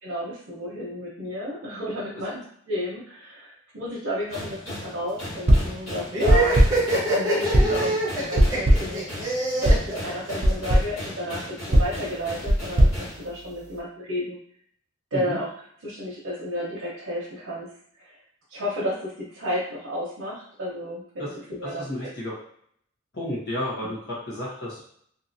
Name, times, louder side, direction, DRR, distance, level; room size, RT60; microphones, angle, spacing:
voice 1, 0.0-6.5 7.1-7.9 8.3-9.1 9.6-14.4 15.1-15.5 15.8-17.7 18.0-18.2 18.5-22.1 23.8-23.9, left 1 dB, 85° right, -8 dB, 0.8 m, -32 dB
sound 1, 4.3-13.2, left 1 dB, 75° left, 1.4 m, -37 dB
sound 2, 5.5-5.8 6.3-6.9 7.5-7.9 8.4-9.0 9.6-9.9 10.4-11.0 11.7-13.8, equal, 35° right, 0.5 m, -20 dB
sound 3, 6.1-10.7, right 2 dB, 20° right, 1.1 m, -25 dB
voice 2, 7.6-8.0 15.1-15.4 21.2-21.3 21.6-22.3 23.1-24.8, left 1 dB, 55° left, -5 dB, 0.9 m, -32 dB
2.8 x 2.7 x 2.6 m, 0.65 s
head